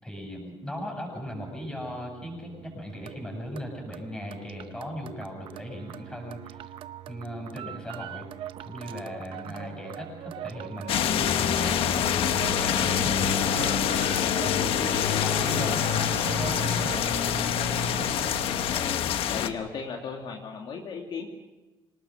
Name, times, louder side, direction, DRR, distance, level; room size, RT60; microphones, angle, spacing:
voice 1, 0.0-6.7 7.1-8.3 8.6-13.8 14.4-17.1, equal, 10° left, 0 dB, 7.7 m, -38 dB
sound 1, 1.2-18.5, right 11 dB, 70° right, 0.8 m, -40 dB
sound 2, 10.9-19.5, left 9 dB, 80° left, 1.2 m, -25 dB
voice 2, 18.6-21.3, left 5 dB, 60° left, 1 dB, 2.5 m, -36 dB
27.0 x 19.0 x 6.6 m, 1.1 s
cardioid pair, 145°, 9 cm